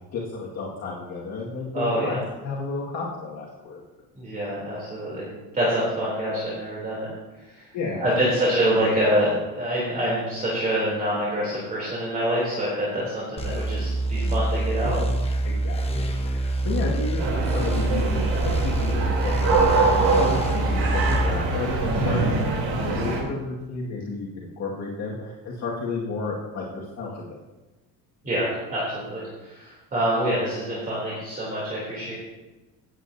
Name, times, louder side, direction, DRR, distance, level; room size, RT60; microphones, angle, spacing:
voice 1, 0.1-3.8 7.7-8.3 8.6-8.9 9.3-9.4 12.8-13.1 14.8-15.1 15.4-27.4, left 3 dB, 45° left, -5 dB, 2.0 m, -32 dB
voice 2, 1.7-2.2 4.1-5.3 5.5-7.1 7.5-7.6 8.0-15.0 28.2-32.1, equal, 25° right, -7 dB, 3.2 m, -26 dB
sound 1, 13.4-21.3, right 1 dB, 15° left, 1.1 m, -25 dB
sound 2, 17.2-23.2, right 3 dB, 75° right, 3.4 m, -24 dB
18.0 x 8.4 x 2.8 m, 1.1 s
cardioid pair, 155°, 36 cm